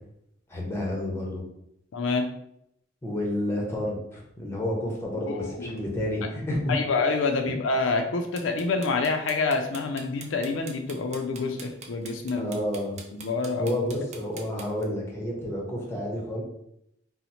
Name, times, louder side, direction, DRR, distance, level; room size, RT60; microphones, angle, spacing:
voice 1, 0.5-1.4 3.0-6.8 7.5-7.6 12.4-13.0 13.6-16.4, left 1 dB, 15° left, -2 dB, 0.8 m, -30 dB
voice 2, 1.9-2.3 5.3-5.9 6.7-12.5 13.1-13.8, left 3 dB, 90° left, 5 dB, 0.4 m, -27 dB
sound 1, 8.3-14.8, right 5 dB, 40° right, 0.4 m, -44 dB
2.8 x 2.0 x 4.1 m, 0.77 s
head